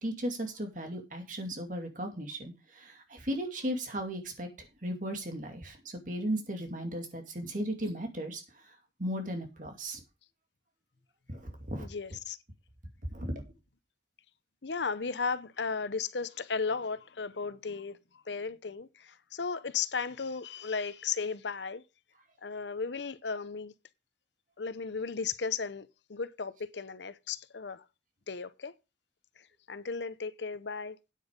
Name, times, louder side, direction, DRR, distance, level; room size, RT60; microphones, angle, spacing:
voice 1, 0.0-4.5 4.8-8.4 9.0-10.0 11.3-11.9 13.1-13.4, equal, 45° right, 2.5 m, -36 dB
voice 2, 11.8-12.4 14.6-21.8 22.4-23.7 24.6-27.8 28.3-28.7 29.4-31.0, left 5 dB, 80° left, 0.8 m, -35 dB
9.3 x 8.1 x 5.2 m
head